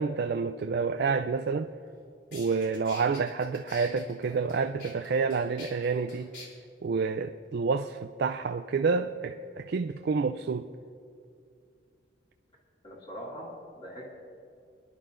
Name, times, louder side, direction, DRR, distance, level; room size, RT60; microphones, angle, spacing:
voice 1, 0.0-1.7 2.3-6.3 6.8-10.7, right 4 dB, 60° right, 0.3 m, -29 dB
sound 1, 1.9-2.0 2.3-6.5, left 3 dB, 75° left, 3.4 m, -47 dB
voice 2, 12.8-14.0, equal, 30° left, 2.4 m, -42 dB
25.5 x 11.5 x 2.5 m
head